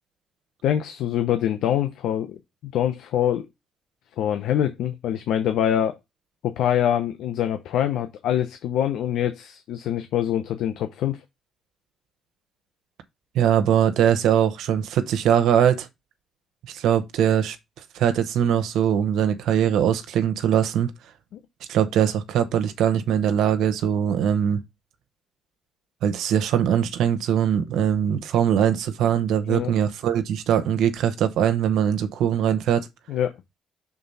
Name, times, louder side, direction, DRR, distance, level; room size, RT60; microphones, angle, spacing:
voice 1, 0.6-2.4 2.7-3.5 4.2-6.0 6.4-11.2 21.3-21.4 29.5-29.7 33.1-33.3, left 10 dB, 85° left, 0.7 m, -24 dB
voice 2, 13.3-15.9 16.7-17.6 17.9-20.9 21.7-24.6 26.0-32.9, right 9 dB, 85° right, 0.9 m, -21 dB
6.0 x 3.8 x 5.3 m
cardioid pair, 90°, 0 cm